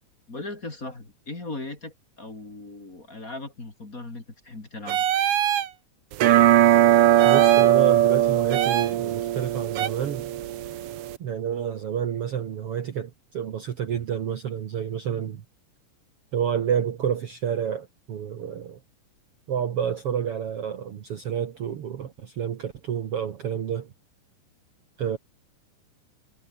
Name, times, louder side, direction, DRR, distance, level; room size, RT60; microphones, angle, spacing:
voice 1, 0.3-5.1, left 2 dB, 25° left, 3.8 m, -38 dB
sound 1, 4.9-5.7 7.2-7.7 8.5-8.9 9.8-9.9, right 10 dB, 85° right, 3.6 m, -25 dB
sound 2, 6.1-11.2, right 12 dB, 70° right, 1.4 m, -20 dB
voice 2, 7.2-10.3 11.2-15.4 16.3-18.8 19.5-23.9 25.0-25.2, right 8 dB, 55° right, 2.0 m, -29 dB
omnidirectional pair, 3.8 m